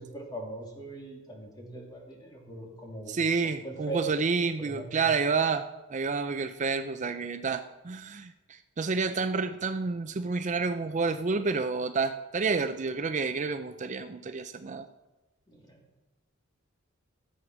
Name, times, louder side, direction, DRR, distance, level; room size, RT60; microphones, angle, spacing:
voice 1, 0.0-4.1 4.6-5.1 15.5-15.8, right 2 dB, 20° left, -1 dB, 2.7 m, -41 dB
voice 2, 3.1-14.9, right 4 dB, 35° right, 9 dB, 0.5 m, -29 dB
15.0 x 7.8 x 6.1 m, 1.1 s
head